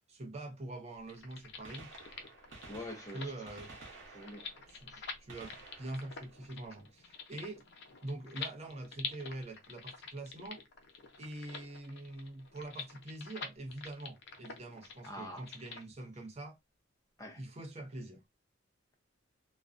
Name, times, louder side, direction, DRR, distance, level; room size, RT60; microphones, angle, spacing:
voice 1, 0.1-1.9 3.1-3.7 4.7-4.9 5.2-7.6 8.0-10.6 11.2-16.6 17.4-18.2, right 2 dB, 35° right, 0.6 m, -44 dB
sound 1, 1.0-15.8, left 5 dB, 65° left, 0.6 m, -47 dB
Gunshot gunfire, 1.6-7.4 9.3-9.4 10.5-10.6 12.1-12.2 13.6-13.7 13.9-14.0, right 3 dB, 70° right, 0.8 m, -54 dB
voice 2, 2.7-3.3 4.1-4.5 4.9-5.0 15.0-15.5 17.2-17.4, left 1 dB, 15° left, 0.6 m, -45 dB
2.4 x 2.1 x 2.4 m
head